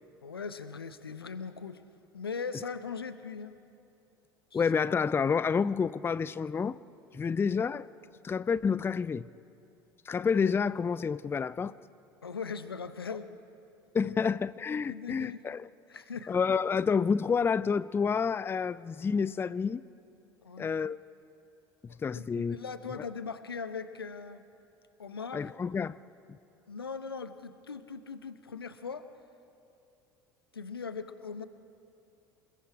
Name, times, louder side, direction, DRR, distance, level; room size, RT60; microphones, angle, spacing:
voice 1, 0.2-1.8 2.1-3.6 4.5-4.6 7.2-7.4 12.2-13.3 14.9-15.4 15.9-16.3 20.4-20.7 21.9-24.5 25.0-25.5 26.7-29.0 30.5-31.5, left 5 dB, 85° left, 0.8 m, -40 dB
voice 2, 4.5-6.8 7.1-7.9 8.2-9.3 10.1-11.7 13.9-15.7 16.3-19.8 20.6-21.0 22.0-22.6 25.3-26.0, left 6 dB, 20° left, 0.4 m, -29 dB
27.5 x 21.5 x 4.8 m
figure-of-eight pair, 65°, 12 cm